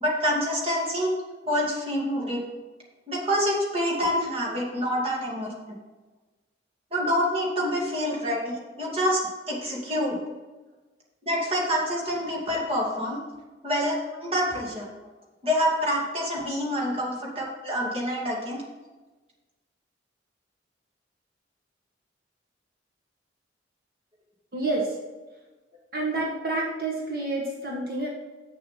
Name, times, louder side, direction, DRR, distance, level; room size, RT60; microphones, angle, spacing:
voice 1, 0.0-1.1 1.5-2.4 3.1-5.5 6.9-9.2 9.5-10.2 11.2-13.2 13.6-14.9 15.4-18.6, equal, 30° right, -3 dB, 2.4 m, -26 dB
voice 2, 24.5-25.0 25.9-28.1, right 2 dB, 55° right, -2 dB, 1.6 m, -29 dB
7.8 x 6.9 x 5.8 m, 1.2 s
head